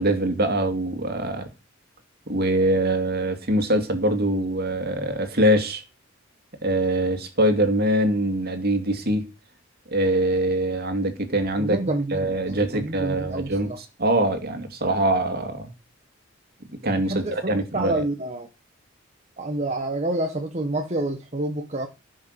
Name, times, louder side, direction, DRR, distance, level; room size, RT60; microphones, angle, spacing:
voice 1, 0.0-1.5 2.3-5.8 6.6-9.3 9.9-11.8 12.1-13.7 14.0-15.7 16.8-18.0, right 1 dB, 50° right, 2.6 m, -23 dB
voice 2, 11.6-13.8 17.0-18.5 19.4-21.9, right 2 dB, 35° right, 1.4 m, -28 dB
15.5 x 6.4 x 6.7 m
head